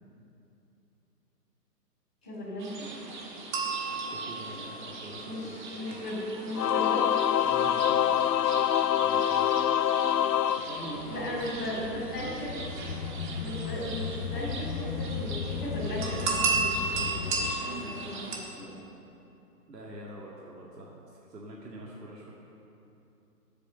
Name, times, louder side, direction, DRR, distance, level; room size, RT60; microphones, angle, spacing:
voice 1, 2.2-2.9 5.2-7.0 11.1-12.6 13.4-14.7 15.0-18.9, equal, 5° left, -13 dB, 0.5 m, -37 dB
sound 1, 2.6-18.4, right 3 dB, 30° right, 1.4 m, -36 dB
voice 2, 3.9-6.0 7.4-9.8 10.2-11.9 17.6-18.1 19.7-21.0 21.3-22.3, right 1 dB, 80° right, -4 dB, 2.1 m, -44 dB
Singing / Musical instrument, 6.5-11.4, left 10 dB, 80° left, 0.6 m, -25 dB
sound 2, 10.8-17.5, left 6 dB, 50° left, 0.9 m, -36 dB
13.0 x 8.4 x 6.7 m, 2.8 s
hypercardioid pair, 155°, 49 cm